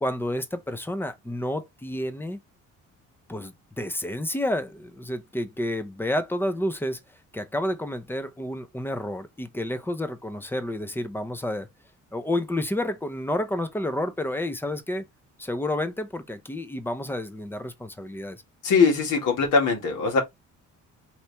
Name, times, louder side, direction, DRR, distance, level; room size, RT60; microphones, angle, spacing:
voice 1, 0.0-2.4 3.3-7.0 7.3-11.7 12.1-15.1 15.4-18.4, left 1 dB, 5° left, 0.7 m, -30 dB
voice 2, 18.6-20.2, left 5 dB, 80° left, 2.0 m, -21 dB
4.4 x 2.8 x 3.4 m
cardioid pair, 90°, 30 cm